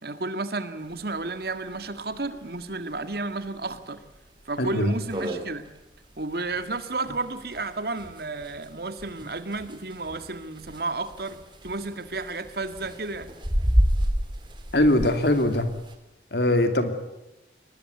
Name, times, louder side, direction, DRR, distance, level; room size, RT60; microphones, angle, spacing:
voice 1, 0.0-4.0 4.5-5.7 6.2-11.4 11.6-13.3, right 3 dB, 55° right, 10 dB, 1.9 m, -32 dB
sound 1, 0.9-1.0 1.3-1.4 1.7-1.8 2.4-2.6 3.1-3.2 3.7-3.8 4.1-4.2 4.7-4.8 4.9-15.9, equal, 25° right, 3.2 m, -30 dB
voice 2, 4.6-4.9 14.7-15.7 16.3-16.9, left 1 dB, 60° left, 8 dB, 2.8 m, -21 dB
23.0 x 19.5 x 8.5 m, 0.95 s
head